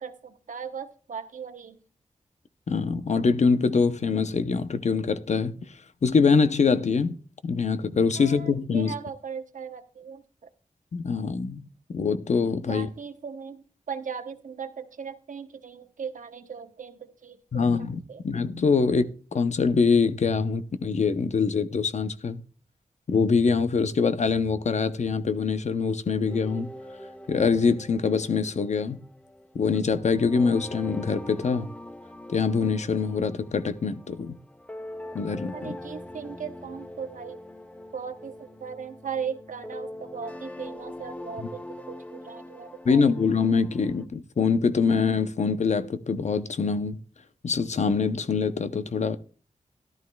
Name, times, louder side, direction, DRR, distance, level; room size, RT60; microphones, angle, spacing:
voice 1, 0.0-1.8 8.2-10.2 12.7-17.7 18.1-18.2 35.5-37.4 37.9-43.1, right 6 dB, 80° right, 0.9 m, -38 dB
voice 2, 2.7-5.7 6.0-7.2 7.4-8.9 10.9-12.9 17.5-22.4 23.1-26.7 27.3-29.0 29.5-31.7 32.3-34.4 35.1-35.8 41.4-41.5 42.8-47.0 47.4-49.2, left 5 dB, 60° left, 0.7 m, -24 dB
sound 1, 26.3-44.1, left 1 dB, 10° left, 0.6 m, -43 dB
14.5 x 12.0 x 2.3 m
wide cardioid pair, 105°, 13 cm